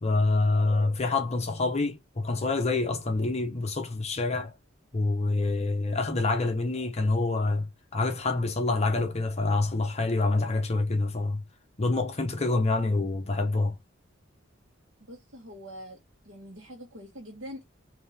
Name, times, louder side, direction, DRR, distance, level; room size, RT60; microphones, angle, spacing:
voice 1, 0.0-4.5 4.9-11.4 11.8-13.8, left 3 dB, 35° left, 0.8 m, -26 dB
voice 2, 15.0-16.0 16.2-17.6, equal, 70° right, 1.3 m, -44 dB
3.7 x 2.7 x 3.2 m
head